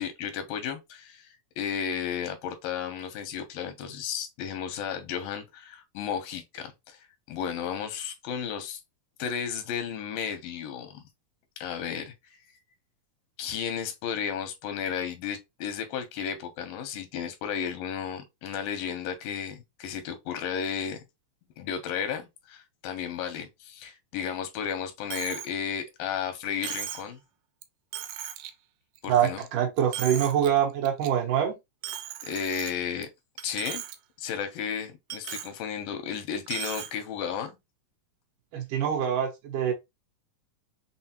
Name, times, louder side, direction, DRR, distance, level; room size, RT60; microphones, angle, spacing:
voice 1, 0.0-7.0 7.3-8.8 9.2-11.0 11.6-12.4 13.4-21.0 21.6-27.2 29.0-29.4 32.2-33.1 33.4-33.8 34.2-37.6, left 8 dB, 85° left, 2.5 m, -33 dB
Coin (dropping), 25.1-25.5 25.9-26.0 26.6-27.1 27.6-27.7 27.9-28.5 29.0-29.5 29.8-30.5 30.9-31.1 31.8-33.0 33.4-34.0 34.3-34.4 35.1-35.5 36.5-36.9, right 10 dB, 90° right, 2.3 m, -37 dB
voice 2, 29.1-31.5 38.5-39.7, right 9 dB, 75° right, 2.6 m, -25 dB
6.1 x 2.0 x 2.8 m
omnidirectional pair, 3.9 m